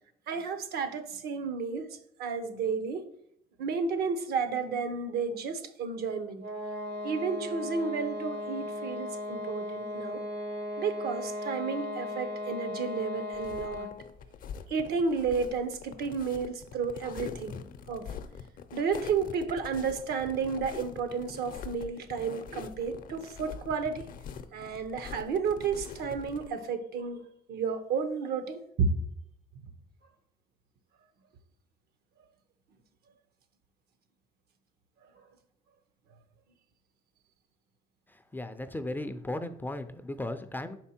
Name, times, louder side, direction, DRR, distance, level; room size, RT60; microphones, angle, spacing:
voice 1, 0.3-1.9 2.2-3.1 3.6-6.4 7.0-10.2 10.8-13.9 14.7-17.6 17.9-18.1 18.7-24.0 24.5-29.0, right 5 dB, 70° right, 0.8 m, -32 dB
sound 1, 6.4-14.1, left 2 dB, 90° right, 2.1 m, -37 dB
sound 2, 13.3-26.5, left 7 dB, 55° left, 0.6 m, -44 dB
voice 2, 38.1-40.8, left 1 dB, 10° left, 0.4 m, -36 dB
5.4 x 4.5 x 4.3 m
cardioid pair, 110°, 17 cm